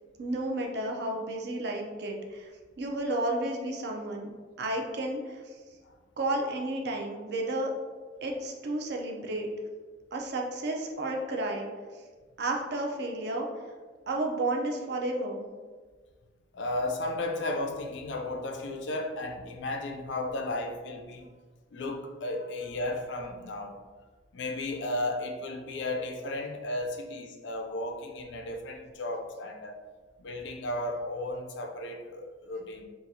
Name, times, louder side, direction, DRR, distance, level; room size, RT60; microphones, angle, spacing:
voice 1, 0.2-2.5 2.8-4.3 4.6-5.6 6.2-7.7 8.2-9.5 10.1-11.7 12.4-13.5 14.1-15.4, right 2 dB, 60° right, 1 dB, 0.5 m, -32 dB
voice 2, 16.5-21.3 21.7-23.8 24.3-29.8 30.2-32.8, left 2 dB, 75° left, 3 dB, 0.4 m, -34 dB
3.9 x 2.4 x 2.6 m, 1.4 s
head